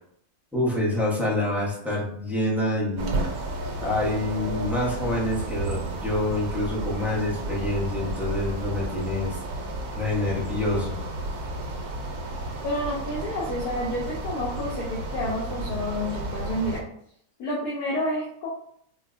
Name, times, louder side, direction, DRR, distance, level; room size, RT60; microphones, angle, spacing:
voice 1, 0.5-3.2 3.8-9.4 9.9-11.0, left 1 dB, ahead, -7 dB, 0.5 m, -27 dB
sound 1, 3.0-16.8, right 2 dB, 80° right, 1.1 m, -32 dB
voice 2, 12.6-16.8 17.4-18.5, left 1 dB, 85° left, -5 dB, 1.2 m, -29 dB
4.3 x 2.1 x 2.4 m, 0.67 s
omnidirectional pair, 1.6 m